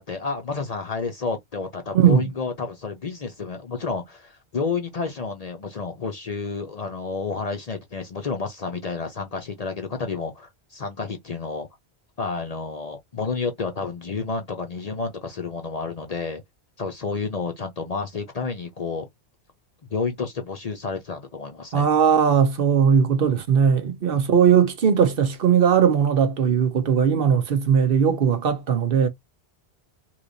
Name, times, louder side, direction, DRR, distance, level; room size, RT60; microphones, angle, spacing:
voice 1, 0.0-11.7 12.2-16.4 16.8-19.1 19.9-21.9 23.1-23.3 24.1-24.3, left 4 dB, 45° left, 0.6 m, -30 dB
voice 2, 1.9-2.3 21.7-29.1, right 7 dB, 65° right, 0.9 m, -19 dB
3.3 x 3.0 x 2.5 m
omnidirectional pair, 1.1 m